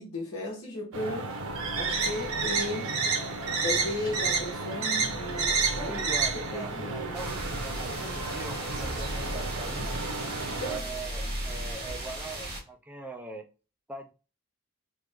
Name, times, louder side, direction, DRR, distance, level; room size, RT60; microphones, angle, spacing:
voice 1, 0.0-1.3 1.8-3.0 3.6-6.0 6.5-7.3 8.0-8.2 10.5-10.8, left 1 dB, 80° left, 1.2 m, -35 dB
sound 1, 0.9-10.8, right 4 dB, 80° right, 0.7 m, -31 dB
sound 2, 1.4-11.7, equal, 35° left, 0.8 m, -41 dB
voice 2, 5.8-9.9 10.6-13.5 13.9-14.1, right 2 dB, 5° right, 0.4 m, -42 dB
sound 3, 7.1-12.6, right 2 dB, 45° right, 1.4 m, -38 dB
3.1 x 2.5 x 3.3 m
head